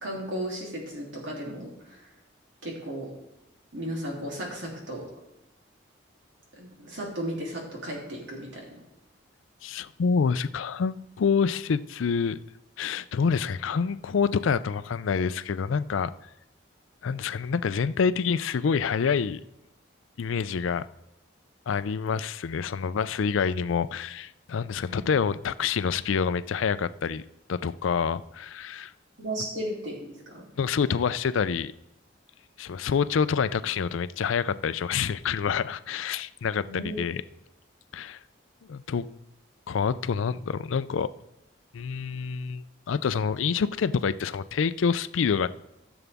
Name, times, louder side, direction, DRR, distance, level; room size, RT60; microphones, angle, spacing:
voice 1, 0.0-2.0 2.6-3.1 3.7-5.0 6.6-8.8 24.9-25.0 29.2-30.4 36.7-36.9, right 1 dB, 70° right, 3.0 m, -35 dB
voice 2, 9.6-12.4 12.8-16.1 17.0-19.4 20.2-20.9 21.7-27.2 27.5-28.9 30.6-31.7 32.6-37.2 37.9-38.2 38.7-39.1 39.7-41.1 41.7-45.5, left 6 dB, 80° left, 0.4 m, -27 dB
15.0 x 7.0 x 3.5 m
head